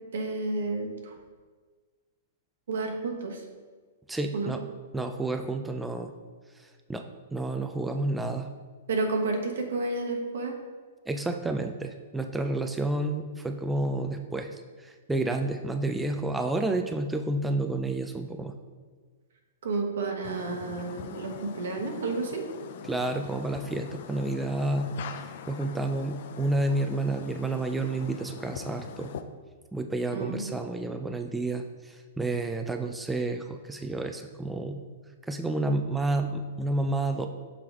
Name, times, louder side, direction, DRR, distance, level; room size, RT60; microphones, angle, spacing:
voice 1, 0.1-1.1 2.7-3.4 4.3-4.5 8.9-10.6 19.6-22.4 30.1-30.4, right 3 dB, 75° right, 2 dB, 1.1 m, -31 dB
voice 2, 4.1-4.6 4.9-6.1 6.9-7.1 7.3-8.5 11.1-18.5 22.9-24.9 25.5-29.1 29.7-34.8 35.3-37.3, right 2 dB, 5° right, 5 dB, 0.3 m, -30 dB
sound 1, 20.2-29.2, left 8 dB, 60° left, 0.4 m, -43 dB
5.9 x 4.9 x 3.6 m, 1.5 s
hypercardioid pair, 135°, 0 cm